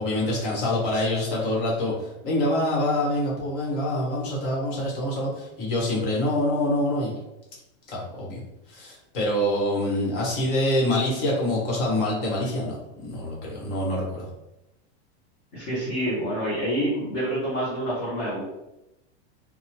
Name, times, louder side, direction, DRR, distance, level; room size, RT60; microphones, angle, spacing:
voice 1, 0.0-7.1 7.9-8.4 8.7-14.2, left 1 dB, 50° left, -4 dB, 1.1 m, -26 dB
voice 2, 15.5-18.4, equal, 20° left, -8 dB, 0.4 m, -27 dB
3.0 x 2.0 x 2.9 m, 0.92 s
supercardioid pair, 180°, 34 cm